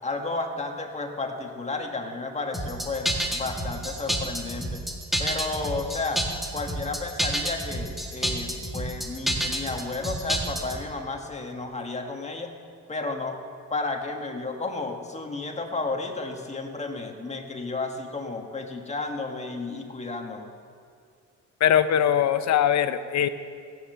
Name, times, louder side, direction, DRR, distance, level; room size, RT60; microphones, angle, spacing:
voice 1, 0.0-4.8 5.2-6.3 6.5-12.5 12.9-13.4 13.7-20.5, left 3 dB, 20° left, 3 dB, 1.8 m, -32 dB
sound 1, 2.5-10.8, equal, ahead, 1.9 m, -29 dB
voice 2, 21.6-23.3, left 9 dB, 65° left, 12 dB, 0.7 m, -21 dB
15.5 x 9.4 x 6.7 m, 2.2 s
cardioid pair, 90°, 30 cm